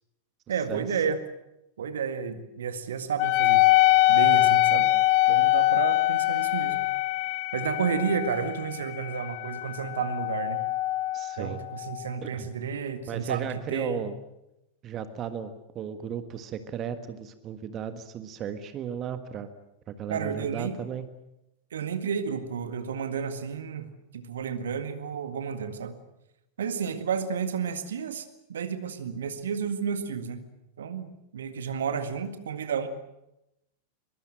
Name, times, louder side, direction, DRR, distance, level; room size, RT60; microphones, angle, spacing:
voice 1, 0.5-1.2 1.8-3.7 4.1-4.9 5.3-6.8 7.5-10.6 11.4-14.1 20.1-20.7 21.7-23.9 24.1-25.9 26.6-30.4 30.8-32.9, right 6 dB, 65° right, 10 dB, 1.9 m, -31 dB
Wind instrument woodwind instrument, 3.2-12.1, left 17 dB, 45° left, 1.0 m, -24 dB
voice 2, 11.1-11.6 12.2-12.5 13.1-14.1 14.8-19.5 19.9-21.1, right 8 dB, 30° right, 10 dB, 1.5 m, -35 dB
23.0 x 22.5 x 7.7 m, 0.88 s
figure-of-eight pair, 90°, 0 cm